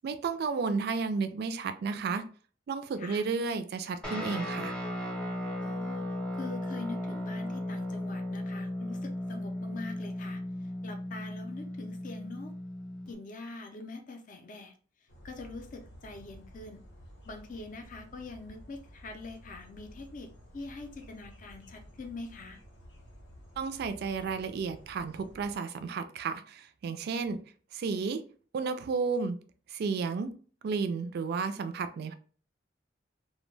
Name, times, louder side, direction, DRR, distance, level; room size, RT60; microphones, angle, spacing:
voice 1, 0.0-2.2 2.7-4.7 23.6-27.4 27.7-28.2 28.5-29.4 29.7-30.3 30.6-32.1, right 5 dB, 60° right, 10 dB, 0.3 m, -32 dB
Guitar, 4.0-13.1, left 1 dB, 5° left, 0.7 m, -36 dB
voice 2, 5.6-6.1 6.3-12.5 13.1-14.8 15.2-16.8 17.3-22.6, left 3 dB, 45° left, 5 dB, 0.4 m, -44 dB
sound 1, 15.1-25.6, equal, 85° left, 0.8 m, -53 dB
2.2 x 2.1 x 3.1 m, 0.41 s
head